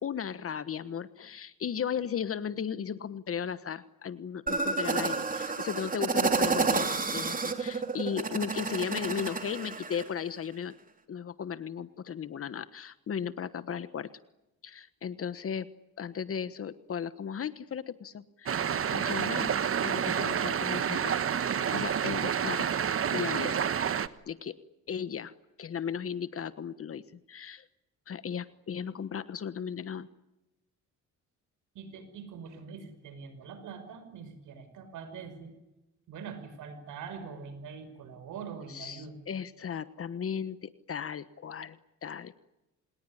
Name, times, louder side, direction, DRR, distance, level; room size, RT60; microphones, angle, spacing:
voice 1, 0.0-10.7 11.1-14.1 14.6-15.7 16.0-18.6 18.9-19.5 19.8-21.2 21.7-22.7 23.1-23.6 24.3-24.6 24.9-25.3 25.6-27.6 28.1-30.1 38.7-42.4, left 7 dB, 50° left, 14 dB, 1.3 m, -36 dB
sound 1, 4.5-10.1, right 4 dB, 25° right, 3.3 m, -30 dB
sound 2, 18.5-24.1, right 8 dB, 45° right, 1.3 m, -29 dB
voice 2, 31.7-35.5 36.1-39.2, right 6 dB, 85° right, 11 dB, 5.6 m, -43 dB
27.5 x 20.5 x 9.8 m, 0.97 s
cardioid pair, 90°, 30 cm